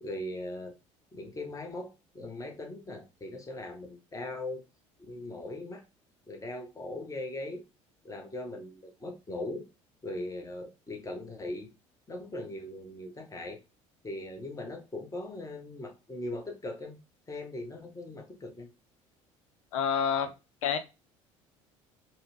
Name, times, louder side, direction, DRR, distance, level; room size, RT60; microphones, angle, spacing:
voice 1, 0.0-0.7 1.1-4.6 5.0-5.8 6.3-7.6 8.0-9.6 10.0-11.7 12.1-13.6 14.0-17.0 17.3-18.7, left 1 dB, 20° left, 1.4 m, -39 dB
voice 2, 19.7-20.3 20.6-20.8, left 7 dB, 80° left, 0.7 m, -27 dB
5.3 x 2.4 x 3.4 m
hypercardioid pair, 65°, 16 cm